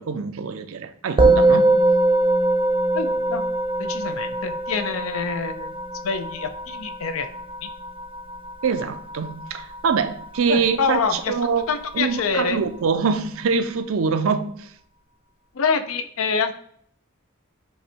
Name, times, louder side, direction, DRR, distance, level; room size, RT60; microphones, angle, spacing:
voice 1, 0.0-1.8 8.6-11.7 11.9-14.7, right 5 dB, 75° right, 11 dB, 0.4 m, -24 dB
Musical instrument, 1.2-10.7, right 2 dB, 25° right, 0.5 m, -22 dB
voice 2, 2.9-3.4 3.8-5.8 6.0-7.3 7.6-7.7 10.5-11.3 11.7-12.6 15.5-16.5, left 5 dB, 70° left, 9 dB, 0.5 m, -26 dB
5.3 x 2.2 x 4.3 m, 0.63 s
head